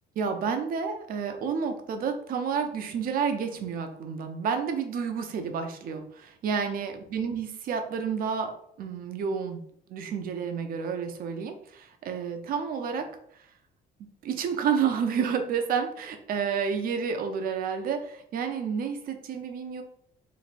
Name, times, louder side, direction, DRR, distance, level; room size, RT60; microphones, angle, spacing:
voice 1, 0.2-9.6 9.9-13.2 14.2-19.8, right 6 dB, 60° right, 6 dB, 0.7 m, -30 dB
3.2 x 2.6 x 4.1 m, 0.67 s
cardioid pair, 110°, 17 cm